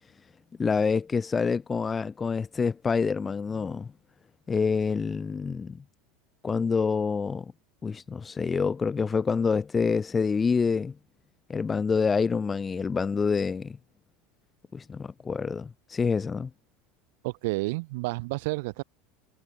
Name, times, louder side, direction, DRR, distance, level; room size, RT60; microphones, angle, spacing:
voice 1, 0.6-3.9 4.5-5.8 6.4-7.5 7.8-10.9 11.5-13.8 14.7-16.5, left 5 dB, 20° left, 0.5 m, -27 dB
voice 2, 17.2-18.8, right 25 dB, 70° right, 2.0 m, -30 dB
supercardioid pair, 115°, 0 cm